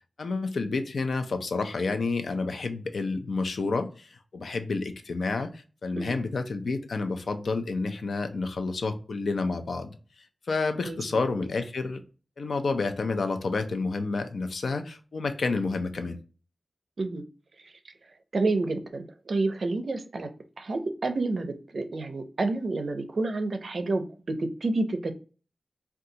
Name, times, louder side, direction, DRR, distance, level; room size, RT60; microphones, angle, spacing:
voice 1, 0.2-10.0 10.5-12.0 12.4-16.2, left 3 dB, 70° left, 7 dB, 0.4 m, -29 dB
voice 2, 18.3-20.3 20.6-25.1, right 3 dB, 60° right, 8 dB, 0.4 m, -29 dB
3.8 x 2.3 x 2.6 m, 0.37 s
wide cardioid pair, 105°, 0 cm